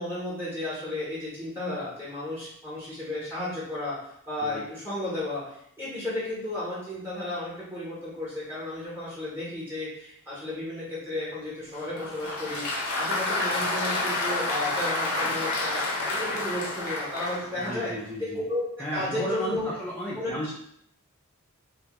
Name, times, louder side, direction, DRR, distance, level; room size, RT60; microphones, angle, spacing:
voice 1, 0.0-4.0 4.3-17.9 18.2-19.7 20.1-20.5, left 1 dB, 10° right, -9 dB, 0.9 m, -33 dB
Applause, 11.7-17.9, left 2 dB, 65° left, 0.6 m, -29 dB
voice 2, 17.6-18.4 18.8-20.5, equal, 5° left, -6 dB, 0.3 m, -34 dB
2.9 x 2.1 x 2.9 m, 0.70 s
head